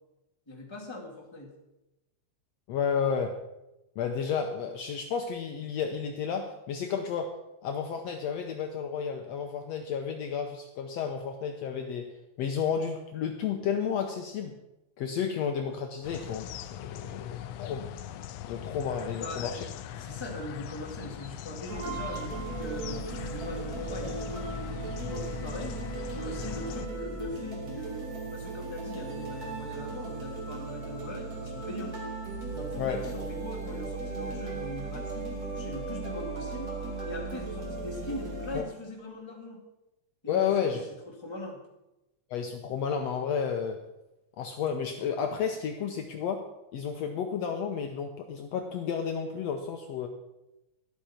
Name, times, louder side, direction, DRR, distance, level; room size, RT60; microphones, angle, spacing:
voice 1, 0.5-1.5 19.1-25.8 26.1-28.0 28.3-32.0 32.5-36.7 37.0-39.6 40.2-40.8 41.2-41.6, left 1 dB, 10° left, -1 dB, 2.0 m, -41 dB
voice 2, 2.7-3.3 4.0-7.3 7.6-12.1 12.4-14.5 15.0-17.9 18.4-19.6 32.8-33.0 38.5-38.6 40.3-40.8 42.3-43.8 44.4-46.4 46.7-50.1, left 7 dB, 70° left, 4 dB, 1.8 m, -31 dB
sound 1, 16.0-26.9, left 11 dB, 90° left, 1.4 m, -41 dB
sound 2, 21.7-38.6, right 3 dB, 30° right, 2.5 m, -37 dB
13.0 x 12.0 x 4.4 m, 0.94 s
omnidirectional pair, 3.5 m